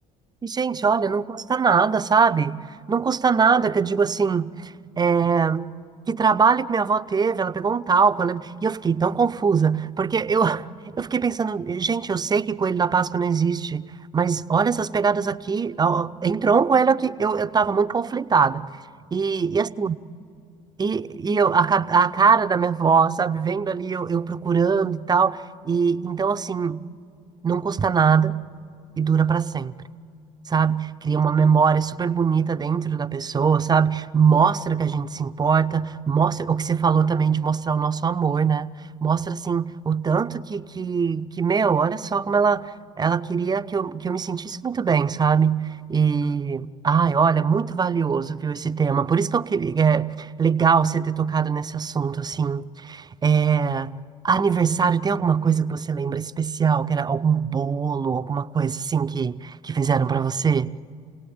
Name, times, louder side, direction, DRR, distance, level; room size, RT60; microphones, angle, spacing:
voice 1, 0.4-2.6 2.9-5.7 6.1-10.7 11.0-18.7 19.1-19.9 20.8-26.9 27.4-28.4 29.0-29.7 30.5-38.8 39.0-42.7 43.0-53.9 54.2-60.7, right 6 dB, 25° right, 0.7 m, -22 dB
28.5 x 17.5 x 8.7 m
supercardioid pair, 80°, 17 cm